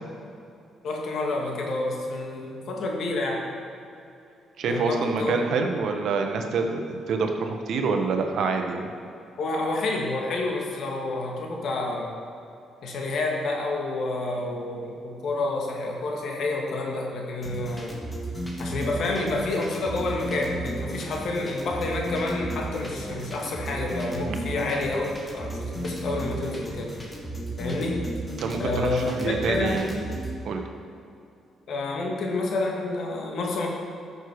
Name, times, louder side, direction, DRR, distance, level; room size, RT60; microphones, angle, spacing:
voice 1, 0.8-3.4 4.7-5.3 9.4-12.1 12.8-17.9 18.6-26.9 27.6-28.0 28.6-29.9 31.7-33.7, left 2 dB, 65° left, 0 dB, 2.1 m, -29 dB
voice 2, 4.6-8.9 28.4-29.9 30.4-30.6, right 4 dB, 70° right, 4 dB, 1.2 m, -26 dB
sound 1, 17.4-30.3, right 1 dB, 15° left, 2.2 m, -34 dB
14.0 x 6.8 x 4.8 m, 2.7 s
cardioid pair, 90°, 0 cm